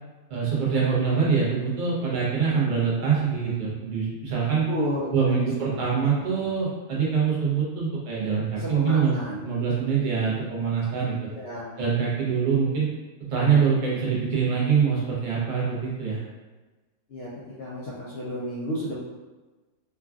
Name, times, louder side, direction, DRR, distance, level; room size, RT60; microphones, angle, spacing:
voice 1, 0.3-4.6 5.1-11.2 11.8-12.9 13.3-16.2, right 6 dB, 40° right, -6 dB, 0.8 m, -24 dB
voice 2, 4.7-5.8 6.4-6.5 8.5-9.4 11.3-11.6 17.1-17.3 17.6-19.0, equal, 70° left, -7 dB, 0.6 m, -32 dB
3.3 x 2.3 x 2.4 m, 1.2 s
omnidirectional pair, 1.5 m